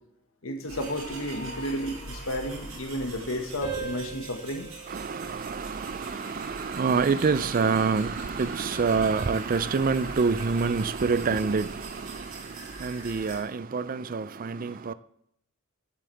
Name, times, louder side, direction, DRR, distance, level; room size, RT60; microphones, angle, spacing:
voice 1, 0.4-4.7 11.3-11.4, equal, 70° left, 1.6 m, -32 dB
sound 1, 0.7-13.4, right 2 dB, 80° right, 3.7 m, -42 dB
sound 2, 1.4-3.3 3.6-6.2 6.6-7.0, right 4 dB, 35° left, 5.3 m, -42 dB
voice 2, 4.9-12.2 12.8-14.9, right 5 dB, 40° right, 0.4 m, -27 dB
16.0 x 7.4 x 3.4 m
head